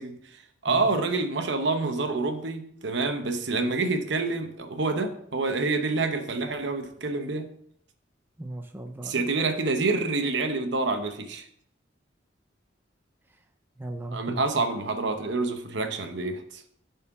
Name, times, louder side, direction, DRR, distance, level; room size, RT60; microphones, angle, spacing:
voice 1, 0.0-7.5 9.0-11.5 14.1-16.6, right 3 dB, 65° right, 7 dB, 0.8 m, -27 dB
voice 2, 8.4-9.3 13.3-13.4 13.8-14.6, right 1 dB, 10° right, 4 dB, 0.4 m, -38 dB
7.2 x 4.3 x 5.8 m, 0.68 s
head